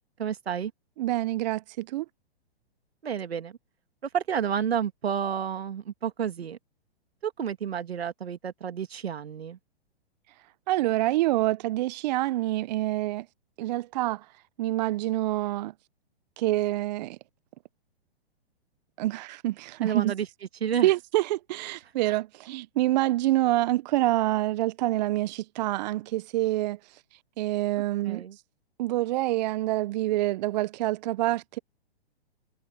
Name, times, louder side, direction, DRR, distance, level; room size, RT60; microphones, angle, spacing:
voice 1, 0.2-0.7 3.0-3.6 4.1-6.6 7.2-9.6 19.8-20.3 20.6-20.9 28.1-28.4, right 8 dB, 80° right, 2.1 m, -30 dB
voice 2, 1.0-2.1 10.7-13.3 13.6-14.3 14.6-15.7 16.4-17.2 19.0-20.1 20.8-26.8 27.4-28.2 28.8-31.6, right 16 dB, 45° right, 0.7 m, -26 dB
hypercardioid pair, 125°, 31 cm